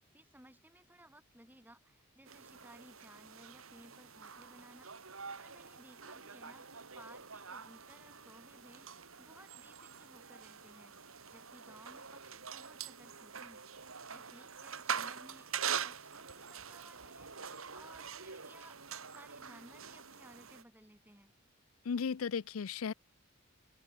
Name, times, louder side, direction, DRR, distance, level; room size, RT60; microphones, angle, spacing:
voice 1, 0.0-4.9 5.4-10.9 11.3-21.3, right 1 dB, 10° right, 6.3 m, -59 dB
sound 1, 2.3-20.6, right 7 dB, 85° right, 3.6 m, -44 dB
voice 2, 21.9-22.9, left 6 dB, 85° left, 0.5 m, -35 dB
open air
head